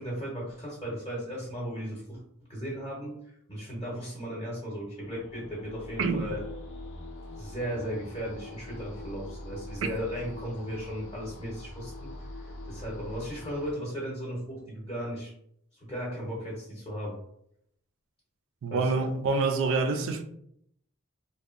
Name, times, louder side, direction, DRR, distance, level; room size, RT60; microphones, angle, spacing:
voice 1, 0.0-2.2 2.5-6.4 7.4-15.3 15.7-17.2 18.7-19.0, equal, 25° left, 0.7 m, -36 dB
sound 1, 4.9-13.7, left 2 dB, 60° left, 0.5 m, -43 dB
voice 2, 6.0-6.3 18.6-20.2, right 4 dB, 65° right, 0.4 m, -26 dB
2.9 x 2.1 x 2.4 m
head